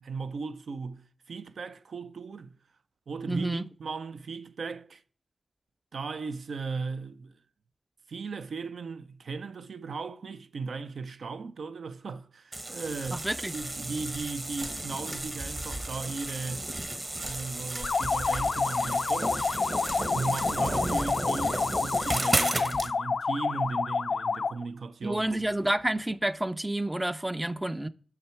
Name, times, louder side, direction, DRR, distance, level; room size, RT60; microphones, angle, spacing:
voice 1, 0.0-2.6 3.1-5.0 5.9-7.4 8.1-16.7 17.1-19.4 20.1-25.2, right 4 dB, 70° right, 0.6 m, -37 dB
voice 2, 3.3-3.6 13.1-13.6 20.8-21.0 25.0-27.9, right 1 dB, 10° right, 0.4 m, -29 dB
sound 1, 12.5-22.9, right 1 dB, 25° right, 1.1 m, -33 dB
sound 2, 17.8-24.6, left 4 dB, 55° left, 0.3 m, -29 dB
8.7 x 6.0 x 4.4 m
wide cardioid pair, 120°, 0 cm